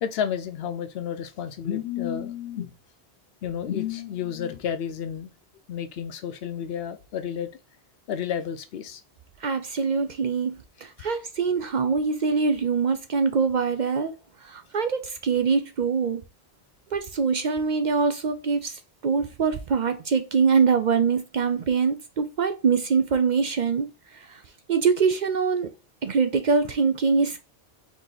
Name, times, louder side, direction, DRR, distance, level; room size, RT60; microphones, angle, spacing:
voice 1, 0.0-2.7 3.4-5.3 5.7-7.5 8.1-9.0, left 9 dB, 70° left, 0.8 m, -31 dB
voice 2, 9.4-14.1 14.4-16.2 16.9-24.4 24.7-25.7 26.0-27.5, right 5 dB, 55° right, 0.6 m, -24 dB
4.8 x 2.7 x 3.9 m
omnidirectional pair, 1.1 m